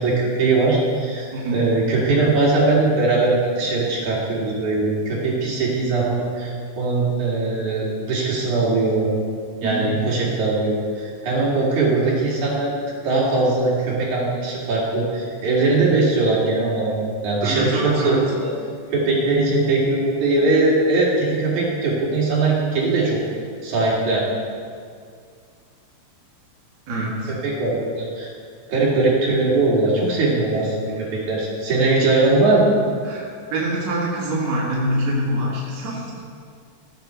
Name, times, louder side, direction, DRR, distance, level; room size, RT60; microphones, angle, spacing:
voice 1, 0.0-9.1 9.6-12.7 13.0-17.0 17.2-18.5 18.9-23.2 23.6-24.2 27.4-28.3 28.7-32.7, right 3 dB, 85° right, -5 dB, 3.9 m, -20 dB
voice 2, 1.3-1.7 9.6-10.0 17.4-18.2 26.9-27.3 33.0-36.1, right 1 dB, 65° right, -6 dB, 3.0 m, -25 dB
16.5 x 7.7 x 4.5 m, 2.1 s
omnidirectional pair, 3.3 m